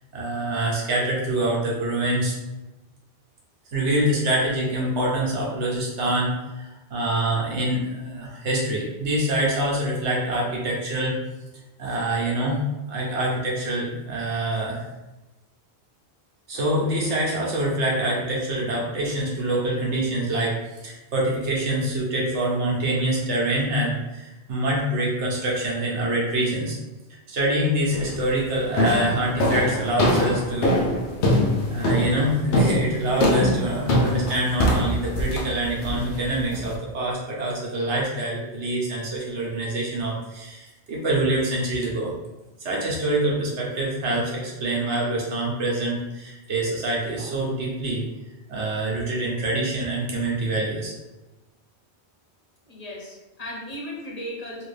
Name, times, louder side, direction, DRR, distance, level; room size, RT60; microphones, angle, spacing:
voice 1, 0.1-2.3 3.7-11.2 11.8-12.6 12.9-14.8 16.5-20.6 20.8-26.8 27.3-30.8 31.7-42.1 42.6-48.0 48.5-50.9, right 1 dB, 90° right, -3 dB, 1.2 m, -25 dB
sound 1, 27.9-28.3 28.8-36.7, left 1 dB, 80° left, 0.9 m, -23 dB
voice 2, 52.7-54.7, equal, 40° left, -4 dB, 0.9 m, -36 dB
3.3 x 2.6 x 3.3 m, 1.1 s
omnidirectional pair, 1.1 m